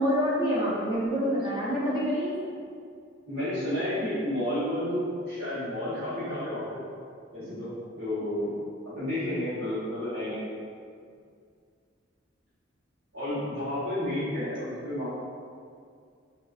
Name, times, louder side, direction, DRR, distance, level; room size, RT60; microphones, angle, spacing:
voice 1, 0.0-2.5, equal, 25° right, -8 dB, 0.6 m, -27 dB
voice 2, 3.3-6.8 7.3-8.5 8.9-10.4 13.1-15.1, left 1 dB, 55° right, -17 dB, 1.0 m, -31 dB
3.2 x 2.3 x 2.4 m, 2.2 s
head